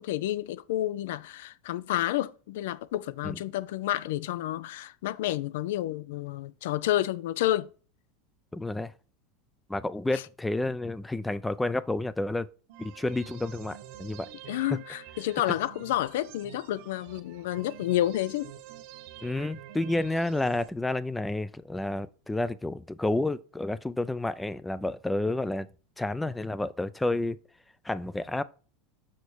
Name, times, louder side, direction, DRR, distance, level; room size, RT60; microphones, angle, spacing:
voice 1, 0.0-7.7 10.1-10.2 14.5-18.5, left 14 dB, 80° left, 0.5 m, -30 dB
voice 2, 8.5-8.9 9.7-12.5 12.8-14.3 14.7-14.8 19.2-25.7 26.0-27.4 27.8-28.4, left 2 dB, 5° left, 0.4 m, -30 dB
sound 1, 12.7-20.7, right 11 dB, 65° right, 1.3 m, -47 dB
6.5 x 5.3 x 4.6 m
supercardioid pair, 150°, 0 cm